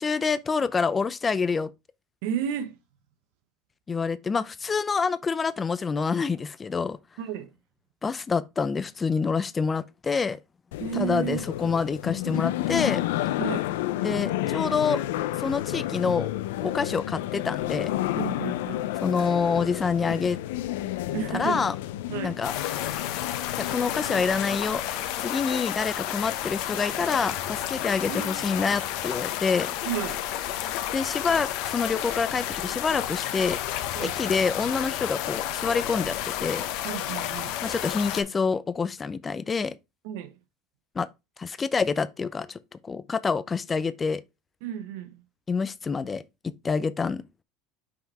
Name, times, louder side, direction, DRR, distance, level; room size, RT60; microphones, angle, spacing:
voice 1, 0.0-1.7 3.9-7.0 8.0-10.4 10.9-13.0 14.0-15.0 15.4-16.3 16.6-17.9 19.0-20.4 21.3-21.7 22.2-22.5 23.6-24.8 25.2-29.7 30.9-33.6 34.0-36.7 37.6-39.8 40.9-41.1 41.4-44.2 45.5-47.2, left 5 dB, 20° left, 0.5 m, -27 dB
voice 2, 2.2-2.8 7.2-7.5 10.8-11.4 13.4-13.8 18.1-18.9 21.1-21.6 22.1-22.4 28.1-28.4 29.8-30.3 33.9-34.2 36.8-37.6 40.0-40.4 44.6-45.2, right 9 dB, 75° right, 1.1 m, -32 dB
sound 1, 10.7-24.6, left 15 dB, 85° left, 0.5 m, -31 dB
sound 2, 22.4-38.2, left 12 dB, 70° left, 1.1 m, -31 dB
5.8 x 5.2 x 3.4 m
supercardioid pair, 120°, 0 cm